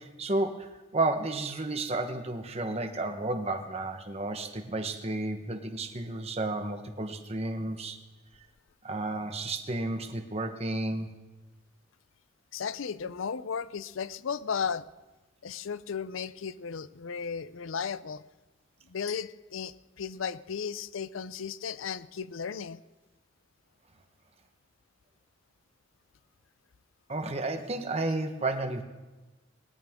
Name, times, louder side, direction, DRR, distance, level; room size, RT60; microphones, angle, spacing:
voice 1, 0.0-8.0 8.8-11.1 27.1-28.8, right 2 dB, 30° right, 5 dB, 1.1 m, -32 dB
voice 2, 12.5-14.9 15.4-18.2 18.9-22.8, left 6 dB, 90° left, 16 dB, 0.5 m, -35 dB
20.0 x 18.0 x 3.7 m, 1.2 s
head